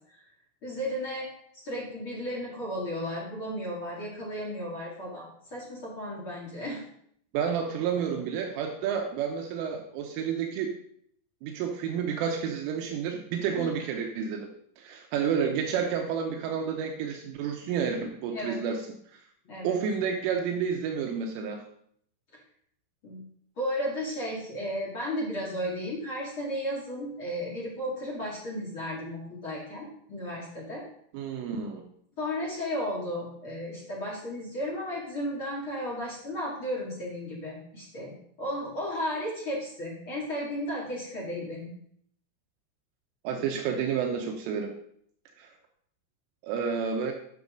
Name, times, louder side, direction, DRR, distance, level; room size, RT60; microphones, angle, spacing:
voice 1, 0.6-1.3 1.5-6.8 13.5-13.7 18.3-18.6 19.4-19.8 23.0-23.2 23.6-30.8 32.2-41.7, equal, 45° left, -3 dB, 1.8 m, -34 dB
voice 2, 7.3-10.7 11.4-14.5 14.8-18.8 19.1-19.2 19.6-21.6 31.1-31.8 43.2-44.7 45.4-45.5 46.4-47.1, right 7 dB, 80° right, 3 dB, 3.4 m, -30 dB
9.7 x 6.3 x 5.1 m, 0.66 s
omnidirectional pair, 5.9 m